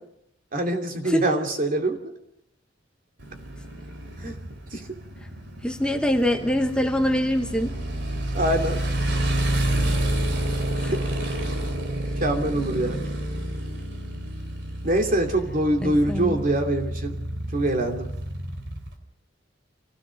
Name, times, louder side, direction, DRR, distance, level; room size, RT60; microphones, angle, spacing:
voice 1, 0.5-2.1 4.2-4.3 4.7-4.9 8.3-8.8 10.9-11.0 12.2-13.0 14.8-17.2 17.5-18.1, right 1 dB, 45° right, 3 dB, 2.7 m, -24 dB
Motorcycle, 3.2-18.9, right 1 dB, 65° right, 3.2 m, -29 dB
voice 2, 5.6-7.7 10.7-10.9 15.8-16.4, equal, 5° left, 4 dB, 1.1 m, -24 dB
26.5 x 16.5 x 6.5 m, 0.75 s
head